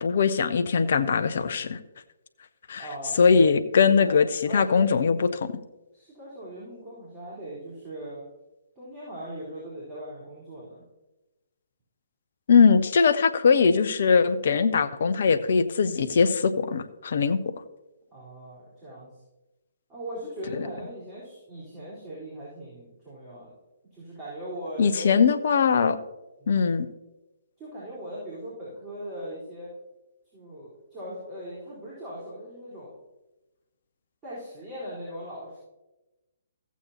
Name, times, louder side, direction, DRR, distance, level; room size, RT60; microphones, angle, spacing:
voice 1, 0.0-1.8 2.7-2.8 3.2-5.5 12.5-17.4 20.6-20.7 24.8-26.0 26.5-26.9, left 5 dB, 55° left, 12 dB, 0.6 m, -21 dB
voice 2, 2.8-3.2 3.8-4.9 5.9-8.3 8.8-10.8 18.1-19.2 19.9-23.5 23.9-25.2 26.4-26.6 27.6-29.7 30.3-32.9 34.2-35.6, equal, 20° right, -9 dB, 4.2 m, -39 dB
15.0 x 8.4 x 2.9 m, 1.0 s
figure-of-eight pair, 130°, 0 cm